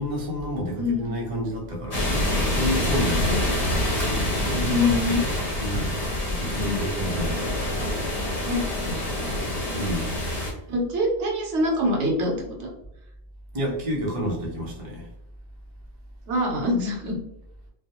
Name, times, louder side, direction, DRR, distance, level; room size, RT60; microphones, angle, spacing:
voice 1, 0.0-2.0 2.5-3.4 4.1-5.0 5.6-7.4 9.7-10.1 13.5-15.1, equal, 35° right, -3 dB, 0.7 m, -29 dB
voice 2, 0.8-1.2 3.0-3.5 4.7-5.2 6.6-6.9 8.4-9.3 10.7-12.3 12.6-12.7 16.3-17.2, left 1 dB, 85° right, 0 dB, 1.0 m, -25 dB
sound 1, 1.9-10.5, left 1 dB, 40° left, 0.9 m, -26 dB
2.3 x 2.1 x 2.8 m, 0.81 s
omnidirectional pair, 1.2 m